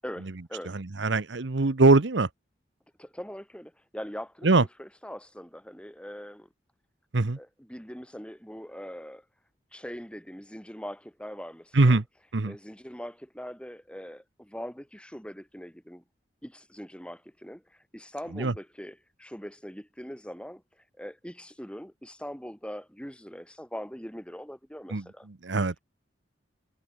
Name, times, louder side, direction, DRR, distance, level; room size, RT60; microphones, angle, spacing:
voice 1, 0.0-0.8 3.0-6.5 7.4-9.2 9.7-12.0 12.5-16.0 16.4-25.3, equal, 5° left, 7.2 m, -42 dB
voice 2, 0.7-2.3 4.4-4.6 7.1-7.4 11.7-12.0 12.3-12.5 18.3-18.5 24.9-25.0 25.4-25.8, right 3 dB, 75° right, 1.0 m, -22 dB
head